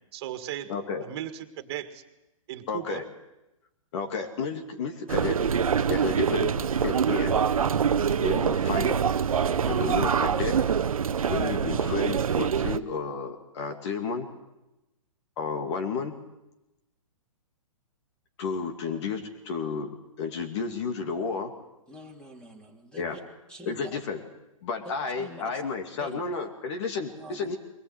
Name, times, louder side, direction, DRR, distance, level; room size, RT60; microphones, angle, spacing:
voice 1, 0.1-0.7 1.0-2.0 2.5-3.0, right 12 dB, 50° right, 9 dB, 1.9 m, -36 dB
voice 2, 0.7-1.0 2.7-3.0 3.9-5.4 5.8-6.6 6.8-7.4 8.2-9.0 9.6-10.6 11.3-14.3 15.4-16.1 18.4-19.9 20.2-21.5 23.0-23.2 23.7-24.2 24.6-27.6, left 5 dB, 55° left, 5 dB, 2.6 m, -32 dB
sound 1, 5.1-12.8, right 7 dB, 85° right, 0.9 m, -25 dB
voice 3, 21.9-23.2 23.5-24.0 25.2-25.6 26.0-26.2 27.1-27.6, equal, 5° left, 3 dB, 2.8 m, -45 dB
22.5 x 19.0 x 8.2 m, 0.95 s
hypercardioid pair, 140°, 18 cm